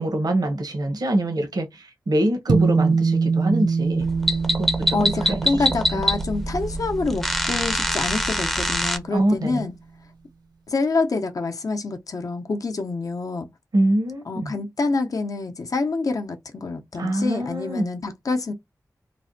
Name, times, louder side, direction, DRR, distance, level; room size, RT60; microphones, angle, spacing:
voice 1, 0.0-4.0 4.5-5.7 5.9-6.0 9.1-9.7 13.7-14.5 17.0-17.9, right 1 dB, 70° right, 0.9 m, -24 dB
sound 1, 2.5-9.1, right 4 dB, 85° right, 0.5 m, -25 dB
sound 2, 4.0-9.0, equal, 5° left, 0.5 m, -25 dB
voice 2, 4.9-9.7 10.7-13.5 14.3-18.5, left 3 dB, 60° left, 0.6 m, -26 dB
3.2 x 2.1 x 2.5 m
wide cardioid pair, 60°, 7 cm